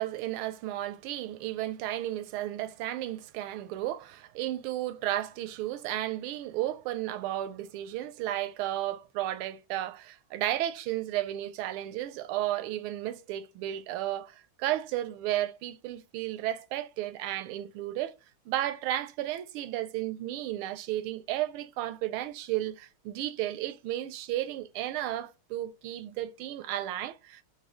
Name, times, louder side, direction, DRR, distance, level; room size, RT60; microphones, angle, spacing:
voice 1, 0.0-18.1 18.5-27.4, right 13 dB, 85° right, 1.4 m, -33 dB
5.0 x 2.6 x 3.6 m
omnidirectional pair, 2.3 m